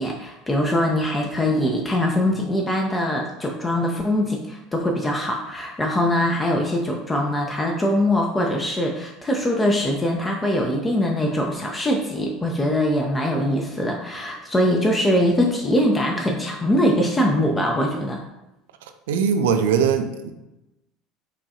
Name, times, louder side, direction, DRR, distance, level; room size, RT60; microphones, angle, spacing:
voice 1, 0.0-18.2, left 1 dB, 20° left, 1 dB, 0.5 m, -22 dB
voice 2, 19.1-20.3, right 7 dB, 70° right, 7 dB, 0.3 m, -20 dB
4.8 x 2.3 x 2.7 m, 0.94 s
hypercardioid pair, 70°, 0 cm